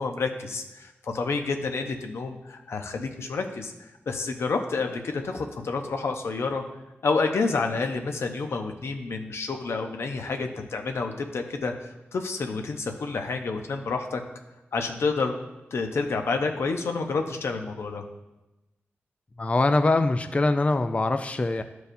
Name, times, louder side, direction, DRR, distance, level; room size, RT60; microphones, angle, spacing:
voice 1, 0.0-3.7 4.1-6.6 7.0-14.2 14.7-15.3 15.7-18.0, left 4 dB, 85° left, 5 dB, 0.6 m, -29 dB
voice 2, 19.4-21.6, left 2 dB, 30° left, 9 dB, 0.3 m, -23 dB
11.0 x 4.6 x 2.6 m, 1.0 s
wide cardioid pair, 70°, 4 cm